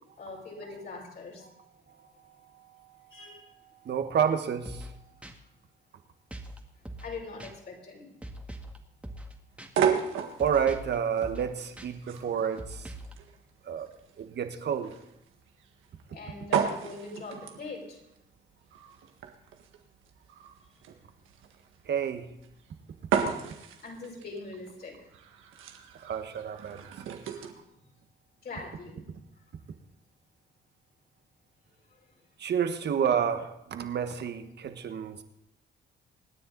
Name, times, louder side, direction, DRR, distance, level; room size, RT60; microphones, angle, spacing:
voice 1, 0.2-1.5 3.1-3.5 7.0-8.2 12.1-12.2 16.1-18.0 23.8-25.1 27.3-27.4 28.4-29.1 31.9-32.1, left 3 dB, 55° left, -1 dB, 5.7 m, -42 dB
voice 2, 3.8-4.9 10.4-12.9 13.7-13.9 14.2-14.9 21.9-22.3 26.0-27.2 32.4-35.2, right 8 dB, 60° right, 8 dB, 1.5 m, -29 dB
sound 1, 4.6-4.9 5.2-5.3 6.3-6.6 6.8-7.1 7.4-7.5 8.2-8.8 9.0-9.3 9.6-9.7 10.4-10.9 11.2-11.5 11.8-11.9 12.6-13.1, equal, 5° right, 1.9 m, -42 dB
sound 2, 9.6-27.5, right 7 dB, 90° right, 1.7 m, -34 dB
25.5 x 9.7 x 4.0 m, 0.86 s
cardioid pair, 90°, 20 cm